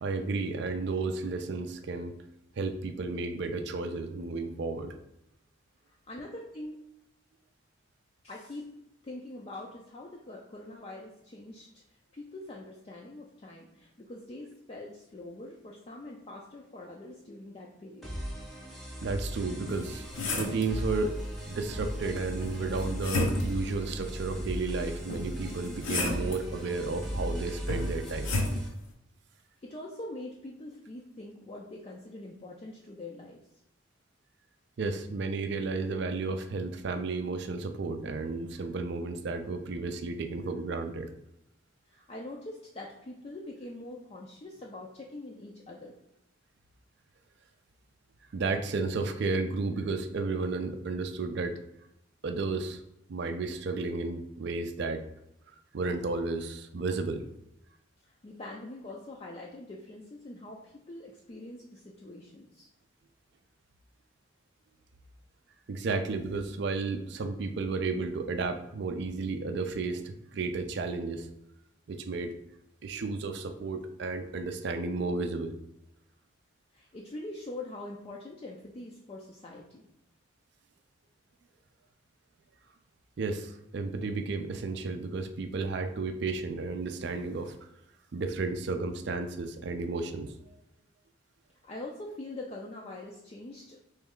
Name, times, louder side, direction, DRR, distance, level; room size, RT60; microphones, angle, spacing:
voice 1, 0.0-2.2 2.6-4.9 19.0-20.0 20.4-21.2 21.4-28.3 34.8-41.1 48.3-51.6 52.2-52.8 53.1-55.0 55.7-57.2 65.7-71.3 71.9-72.3 72.8-75.5 83.2-87.6 88.1-90.3, right 3 dB, 55° right, 7 dB, 0.4 m, -32 dB
voice 2, 5.9-6.8 8.2-8.8 9.0-18.1 29.6-33.5 41.9-45.9 58.1-62.7 76.7-79.8 91.6-93.8, left 2 dB, 30° left, -2 dB, 0.4 m, -44 dB
sound 1, 18.0-28.7, equal, ahead, 0.7 m, -37 dB
sound 2, 19.7-20.7 22.4-23.6 25.1-26.4 27.7-28.6, left 2 dB, 75° left, 0.7 m, -31 dB
3.4 x 3.1 x 3.6 m, 0.83 s
head